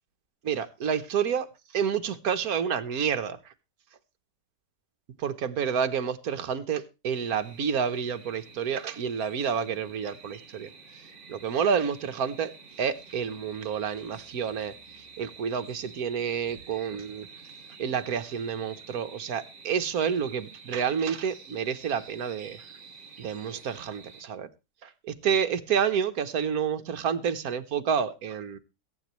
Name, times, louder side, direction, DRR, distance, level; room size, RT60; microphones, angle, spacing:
voice 1, 0.4-1.5 1.7-3.5 5.2-10.7 11.3-12.5 12.8-14.7 15.2-17.3 17.8-22.6 23.2-24.5 24.8-28.6, right 7 dB, 60° right, 9 dB, 1.5 m, -29 dB
sound 1, 7.1-24.2, right 5 dB, 45° right, 2.5 m, -49 dB
22.0 x 9.1 x 3.1 m, 0.28 s
omnidirectional pair, 1.8 m